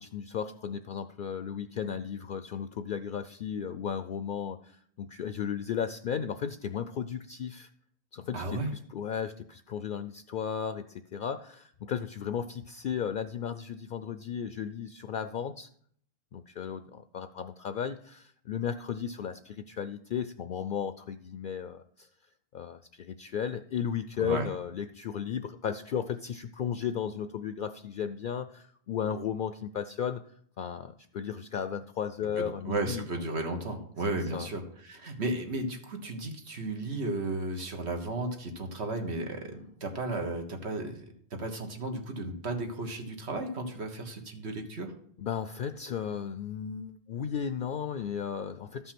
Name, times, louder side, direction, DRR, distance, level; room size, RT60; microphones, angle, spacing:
voice 1, 0.0-7.7 8.1-15.7 16.3-22.1 22.5-30.3 30.6-33.1 34.1-34.5 45.2-48.9, left 8 dB, 60° left, 10 dB, 0.6 m, -35 dB
voice 2, 8.3-8.7 24.2-24.5 32.4-41.1 41.3-44.9, right 2 dB, 80° right, 4 dB, 1.8 m, -34 dB
13.0 x 5.6 x 5.9 m, 0.62 s
omnidirectional pair, 1.1 m